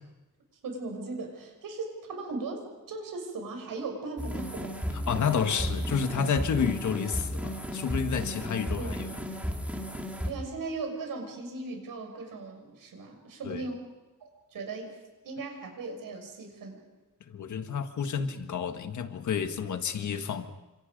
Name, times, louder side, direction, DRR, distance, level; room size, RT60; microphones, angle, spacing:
voice 1, 0.6-4.7 5.6-5.7 8.8-9.1 10.2-13.9 14.2-15.0 15.2-16.8, right 3 dB, 75° right, 3 dB, 6.5 m, -38 dB
sound 1, 4.2-10.3, equal, 5° right, 2.6 m, -34 dB
voice 2, 5.1-9.1 13.4-13.6 17.3-20.5, left 6 dB, 60° left, 7 dB, 1.6 m, -30 dB
29.5 x 26.5 x 5.3 m, 1.1 s
wide cardioid pair, 170°, 34 cm